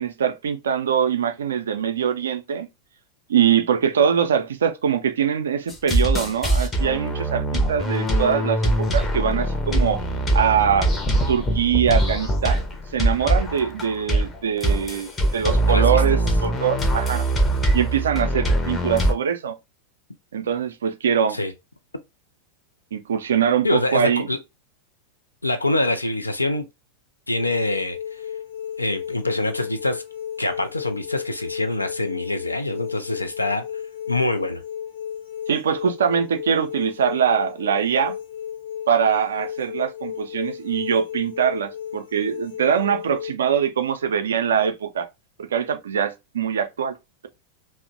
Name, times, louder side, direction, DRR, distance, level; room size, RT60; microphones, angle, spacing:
voice 1, 0.0-2.7 3.3-10.0 10.3-10.9 11.3-12.6 12.9-17.2 17.7-19.6 20.3-21.4 22.9-24.3 35.5-38.1 38.9-45.1 45.4-47.0, right 8 dB, 65° right, 0.4 m, -23 dB
sound 1, 5.7-19.1, right 1 dB, 15° left, 0.6 m, -22 dB
voice 2, 15.7-16.0 21.3-21.5 23.6-24.4 25.4-26.7 27.3-28.2 28.8-30.0 30.4-33.7 34.1-34.6, left 2 dB, 85° left, 0.3 m, -25 dB
sound 2, 27.4-43.3, left 9 dB, 60° left, 0.7 m, -34 dB
2.8 x 2.0 x 2.5 m
figure-of-eight pair, 90°, 0 cm